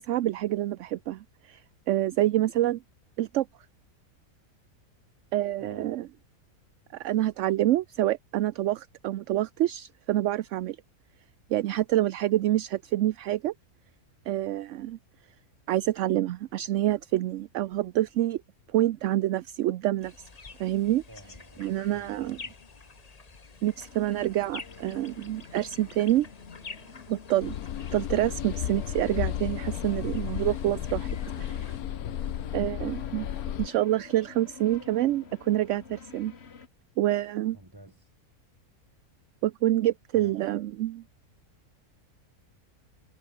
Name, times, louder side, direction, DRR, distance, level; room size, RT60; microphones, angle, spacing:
voice 1, 0.0-1.6 1.9-2.8 3.2-3.5 5.3-6.0 7.0-10.8 11.5-13.5 14.3-15.0 15.7-18.4 18.7-20.1 20.6-21.0 21.6-22.4 23.6-26.3 27.1-27.6 27.9-31.7 32.5-33.3 33.6-36.3 37.0-37.6 39.4-41.0, right 14 dB, 65° right, 0.8 m, -27 dB
voice 2, 5.6-6.1 21.1-21.7 21.9-22.6 32.0-32.6 37.5-38.1 40.1-40.4, right 1 dB, 15° right, 3.9 m, -51 dB
sound 1, 20.0-31.8, left 4 dB, 30° left, 1.2 m, -49 dB
sound 2, 23.7-36.7, left 6 dB, 45° left, 1.6 m, -48 dB
sound 3, 27.4-33.7, left 11 dB, 80° left, 1.3 m, -33 dB
omnidirectional pair, 1.6 m